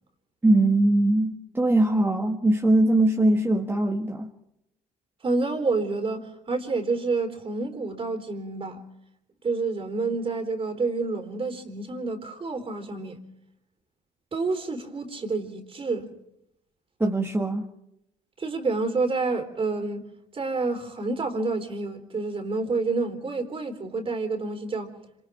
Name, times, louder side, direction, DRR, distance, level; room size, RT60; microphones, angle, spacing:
voice 1, 0.4-4.3 17.0-17.7, right 1 dB, 15° right, 1.8 m, -21 dB
voice 2, 5.2-8.8 9.4-13.2 14.3-16.1 18.4-20.1 20.3-25.0, right 3 dB, 35° right, 3.9 m, -28 dB
27.0 x 26.5 x 3.6 m
supercardioid pair, 85°, 16 cm